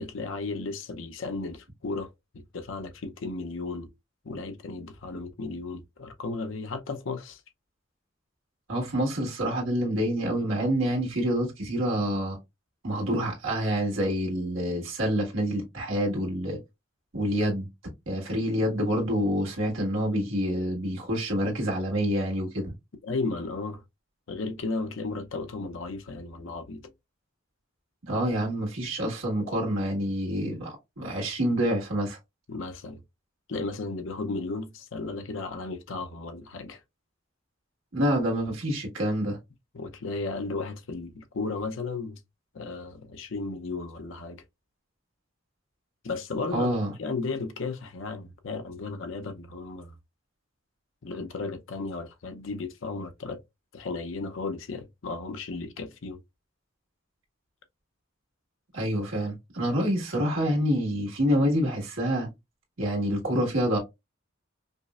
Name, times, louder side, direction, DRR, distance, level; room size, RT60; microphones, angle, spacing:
voice 1, 0.0-2.1 2.3-3.9 4.2-7.4 23.0-23.8 24.3-26.8 32.5-33.0 33.5-36.8 39.7-42.2 42.5-44.4 46.0-46.7 47.0-49.9 51.0-53.4 53.7-56.2, left 3 dB, 70° left, 0.6 m, -34 dB
voice 2, 8.7-12.4 12.8-16.6 17.1-17.7 18.1-22.7 28.1-32.2 37.9-39.4 46.5-46.9 58.7-62.3 62.8-63.8, equal, 90° right, 1.6 m, -27 dB
5.2 x 2.1 x 2.3 m
head